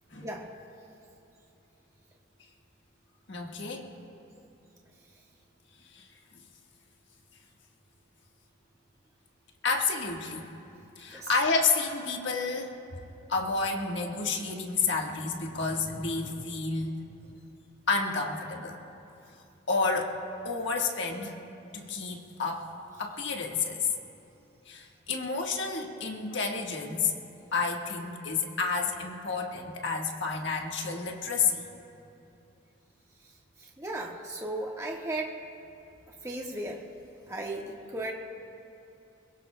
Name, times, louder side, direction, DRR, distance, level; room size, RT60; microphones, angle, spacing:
voice 1, 3.3-3.9 5.9-6.1 9.6-10.5 11.0-12.8 13.3-17.0 17.9-18.8 19.7-20.2 20.4-21.4 21.7-22.7 23.0-23.9 24.7-27.1 27.5-31.6, left 4 dB, 60° left, 1 dB, 1.5 m, -30 dB
voice 2, 33.6-35.4 36.2-36.8 37.3-38.1, right 1 dB, 15° right, -2 dB, 1.4 m, -35 dB
22.5 x 22.0 x 2.2 m, 2.8 s
head